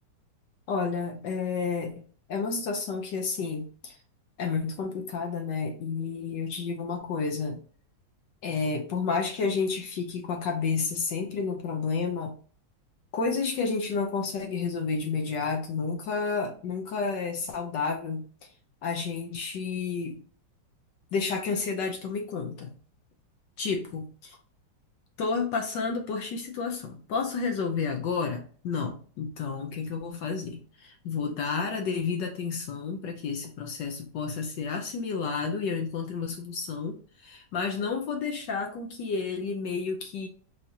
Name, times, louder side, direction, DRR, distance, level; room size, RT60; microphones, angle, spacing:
voice 1, 0.7-2.0 2.3-4.0 4.4-7.6 8.4-12.3 13.1-18.2 18.8-20.2 21.1-22.7 23.6-24.4 25.2-40.3, left 5 dB, 65° left, 3 dB, 1.2 m, -31 dB
4.9 x 2.8 x 2.7 m, 0.41 s
omnidirectional pair, 2.4 m